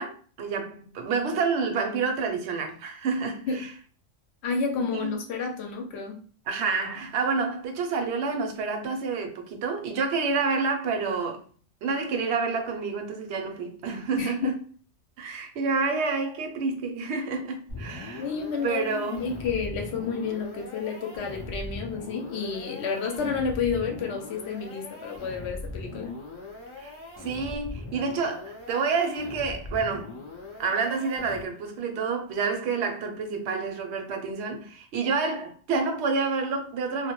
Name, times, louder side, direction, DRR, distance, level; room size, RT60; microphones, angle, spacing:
voice 1, 0.0-3.7 4.8-5.2 6.5-11.4 11.8-14.5 15.2-18.2 18.6-19.2 23.1-23.3 26.8-26.9 27.2-30.1 30.6-37.1, right 4 dB, 65° right, 0.8 m, -28 dB
voice 2, 4.4-6.2 14.2-14.6 18.2-26.1, left 5 dB, 65° left, 0.8 m, -30 dB
sound 1, 17.7-31.7, left 2 dB, 35° left, 0.5 m, -40 dB
2.2 x 2.1 x 2.9 m
omnidirectional pair, 1.3 m